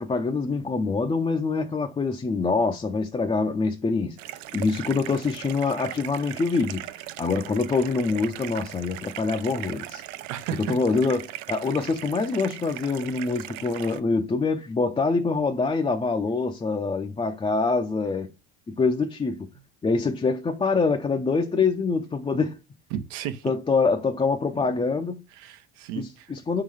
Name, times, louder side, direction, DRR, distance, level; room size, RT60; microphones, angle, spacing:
voice 1, 0.0-4.2 4.5-10.0 10.6-18.3 18.7-19.5 19.8-22.6 23.4-25.2 25.9-26.6, left 4 dB, 20° left, 0.6 m, -25 dB
sound 1, 4.2-14.0, right 15 dB, 70° right, 0.6 m, -39 dB
voice 2, 10.3-10.8 22.9-23.5 25.4-26.3, right 10 dB, 85° right, 1.0 m, -33 dB
5.1 x 3.9 x 4.8 m
supercardioid pair, 100°, 31 cm